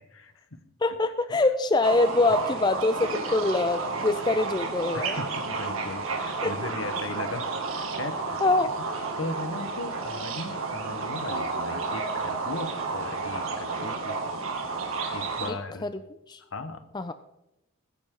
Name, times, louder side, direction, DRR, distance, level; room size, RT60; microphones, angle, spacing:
voice 1, 0.0-0.6 1.3-1.4 4.9-7.5 7.7-8.9 9.2-14.2 15.1-15.9 16.5-16.8, left 2 dB, 75° left, 10 dB, 1.2 m, -38 dB
voice 2, 0.8-5.2 6.4-6.5 8.4-8.7 15.8-15.9 16.3-16.4 16.9-17.1, left 2 dB, 20° left, 10 dB, 0.4 m, -24 dB
sound 1, 1.8-15.5, right 4 dB, 80° right, 2.2 m, -31 dB
21.0 x 9.6 x 3.8 m, 0.89 s
head